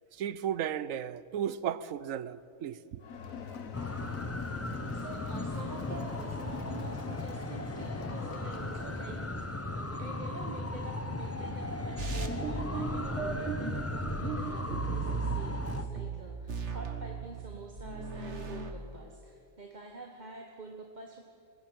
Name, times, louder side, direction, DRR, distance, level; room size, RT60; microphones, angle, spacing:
voice 1, 0.1-3.0, right 9 dB, 75° right, 1.1 m, -35 dB
Crowd, 3.0-9.3, left 6 dB, 75° left, 1.7 m, -43 dB
sound 1, 3.7-15.8, left 1 dB, 15° left, 0.8 m, -37 dB
voice 2, 4.9-9.4 9.7-21.2, right 2 dB, 35° right, 1.5 m, -47 dB
sound 2, 12.0-18.7, right 5 dB, 55° right, 1.9 m, -37 dB
21.5 x 16.0 x 9.2 m
omnidirectional pair, 1.4 m